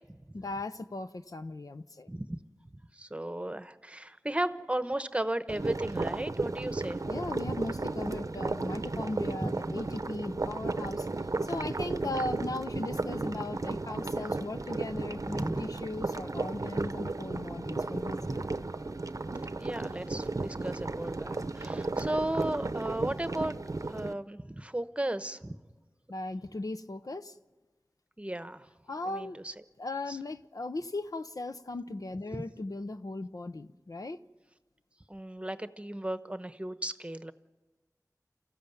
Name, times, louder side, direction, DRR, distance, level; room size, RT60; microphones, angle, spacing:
voice 1, 0.3-2.1 7.1-11.1 11.4-18.4 26.1-27.3 28.9-29.4 29.8-34.2, left 2 dB, 65° left, 0.7 m, -38 dB
voice 2, 2.1-2.4 2.9-7.0 9.4-9.5 15.3-15.6 18.2-18.5 19.6-23.5 23.9-25.6 28.2-28.6 29.1-29.5 30.1-30.2 32.3-32.4 35.1-37.3, right 1 dB, 20° right, 1.0 m, -35 dB
sound 1, 5.5-24.1, right 3 dB, 55° right, 0.7 m, -34 dB
27.5 x 14.5 x 9.2 m
wide cardioid pair, 50°, 7 cm